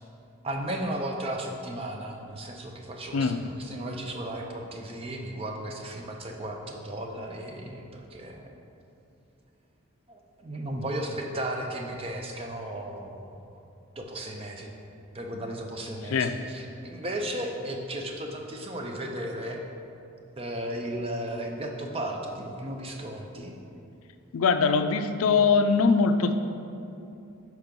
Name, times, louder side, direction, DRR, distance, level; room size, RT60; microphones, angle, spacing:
voice 1, 0.4-8.5 10.1-13.6 14.0-14.7 15.1-19.6 20.4-23.5, right 1 dB, 25° right, 2 dB, 0.5 m, -35 dB
voice 2, 3.1-3.5 16.1-16.4 24.3-26.3, left 5 dB, 75° left, 9 dB, 0.4 m, -22 dB
6.0 x 4.7 x 5.2 m, 2.7 s
head